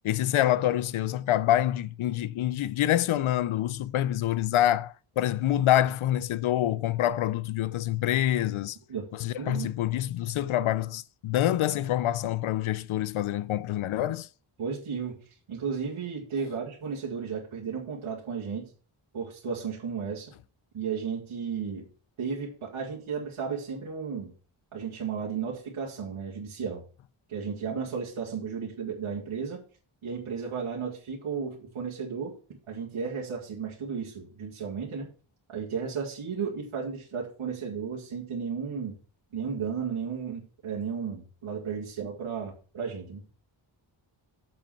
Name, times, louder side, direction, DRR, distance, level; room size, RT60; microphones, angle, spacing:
voice 1, 0.0-8.8 9.2-14.3, left 12 dB, 80° left, 0.6 m, -26 dB
voice 2, 8.9-9.7 14.6-18.7 19.1-20.3 20.7-21.9 22.2-24.3 24.7-26.8 27.3-29.6 30.0-32.4 32.7-35.1 35.5-39.0 39.3-43.3, right 6 dB, 85° right, 2.1 m, -34 dB
7.5 x 5.1 x 5.8 m
wide cardioid pair, 95°, 48 cm